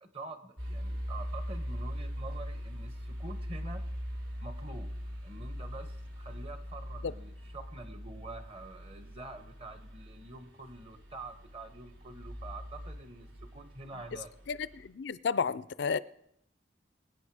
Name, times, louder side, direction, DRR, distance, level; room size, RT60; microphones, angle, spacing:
voice 1, 0.0-3.8 4.4-4.9 5.2-14.3, right 2 dB, 30° right, 1.3 m, -46 dB
sound 1, 0.6-14.9, equal, 70° right, 3.6 m, -41 dB
voice 2, 14.8-16.0, left 6 dB, 70° left, 0.4 m, -31 dB
23.0 x 9.2 x 4.9 m
head